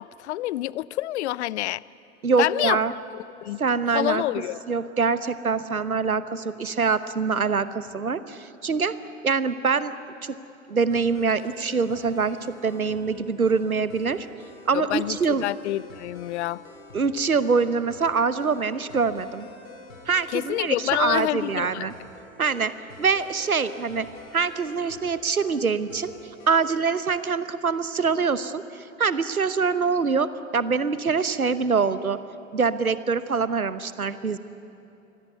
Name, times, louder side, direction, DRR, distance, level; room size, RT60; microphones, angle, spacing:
voice 1, 0.0-1.8 2.4-2.8 3.1-3.6 3.9-4.6 14.7-16.6 20.3-21.9, left 15 dB, 55° left, 22 dB, 0.6 m, -27 dB
voice 2, 2.2-2.9 3.6-4.2 4.7-9.0 9.2-9.9 10.2-10.4 10.7-14.3 14.7-15.5 16.9-19.5 20.1-21.9 22.4-22.7 23.0-24.1 24.3-26.1 26.5-32.2 32.5-34.4, right 5 dB, 90° right, 14 dB, 0.9 m, -24 dB
sound 1, 10.9-26.9, left 3 dB, 75° left, 2.9 m, -48 dB
24.0 x 16.5 x 9.5 m, 3.0 s
figure-of-eight pair, 90°, 42 cm